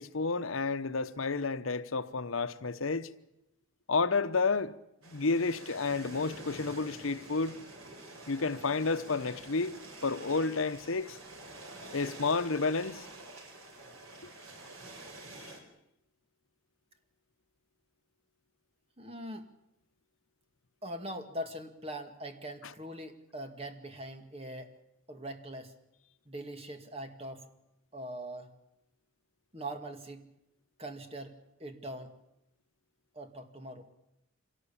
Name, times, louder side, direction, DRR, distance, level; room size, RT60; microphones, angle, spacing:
voice 1, 0.0-3.1 3.9-4.8 5.1-7.6 8.3-9.8 10.0-11.2 11.9-13.1 15.4-15.5, left 4 dB, 80° left, 0.9 m, -31 dB
sound 1, 5.0-15.6, right 2 dB, 90° right, 4.5 m, -48 dB
voice 2, 19.0-19.5 20.8-24.7 25.1-25.7 26.3-27.4 27.9-28.5 29.5-30.2 30.8-31.3 31.6-32.1 33.1-33.8, right 1 dB, 30° right, 2.1 m, -42 dB
26.0 x 18.0 x 8.6 m
head